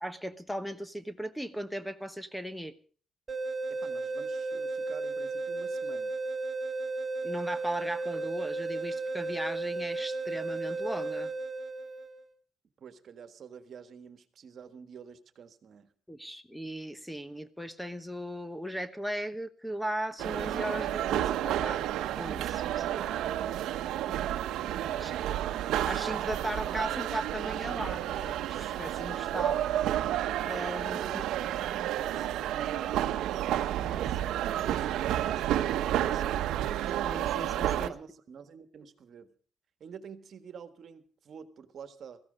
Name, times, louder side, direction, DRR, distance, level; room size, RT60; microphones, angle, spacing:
voice 1, 0.0-2.8 7.2-11.3 16.1-21.8 22.1-23.2 25.0-25.1 25.9-29.5 30.4-31.2 33.8-34.2 37.0-37.9, equal, ahead, 13 dB, 1.1 m, -37 dB
sound 1, 3.3-12.2, right 3 dB, 25° right, 1.7 m, -34 dB
voice 2, 3.7-6.2 12.8-15.9 24.7-25.3 31.0-31.4 31.9-34.5 35.3-36.7 37.7-39.3 39.8-42.2, right 7 dB, 60° right, 11 dB, 1.6 m, -48 dB
sound 2, 20.2-37.9, right 12 dB, 85° right, 0.9 m, -31 dB
16.0 x 15.0 x 5.2 m, 0.42 s
cardioid pair, 90°, 0 cm